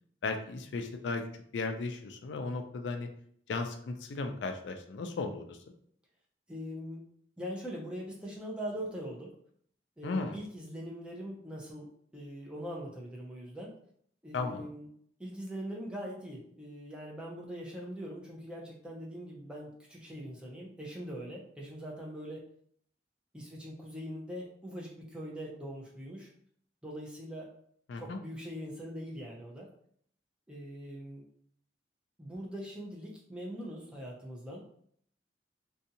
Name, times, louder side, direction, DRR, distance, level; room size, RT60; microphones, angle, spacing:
voice 1, 0.2-1.2 1.5-3.1 3.5-5.6 10.0-10.4 14.3-14.7 27.9-28.2, left 3 dB, 85° left, 5 dB, 0.4 m, -35 dB
voice 2, 6.5-7.0 7.4-9.3 10.0-13.7 14.2-14.9 15.2-22.4 23.3-26.3 26.8-27.5 28.0-29.7 30.5-31.2 32.2-34.8, equal, 5° right, -3 dB, 0.5 m, -42 dB
2.6 x 2.3 x 2.7 m, 0.62 s
head